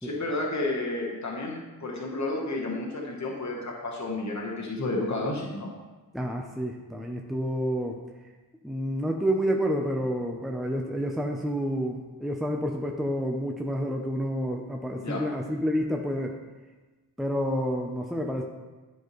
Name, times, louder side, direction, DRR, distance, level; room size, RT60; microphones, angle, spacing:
voice 1, 0.0-5.7 15.0-15.2, left 2 dB, 50° left, -2 dB, 1.2 m, -31 dB
voice 2, 6.1-8.0 8.6-16.4 17.2-18.4, equal, ahead, 2 dB, 0.5 m, -29 dB
9.6 x 4.5 x 3.1 m, 1.2 s
wide cardioid pair, 65°, 37 cm